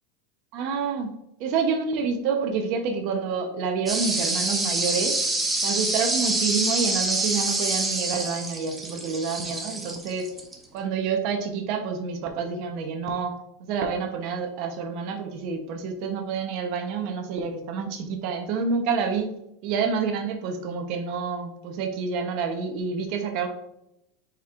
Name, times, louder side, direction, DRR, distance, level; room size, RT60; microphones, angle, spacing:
voice 1, 0.5-1.1 1.4-5.2 5.6-10.3 10.7-19.3 19.6-23.5, right 5 dB, 45° right, 4 dB, 0.9 m, -28 dB
sound 1, 3.9-10.5, right 2 dB, 5° right, 0.7 m, -26 dB
9.0 x 4.5 x 2.5 m, 0.82 s
supercardioid pair, 165°, 0 cm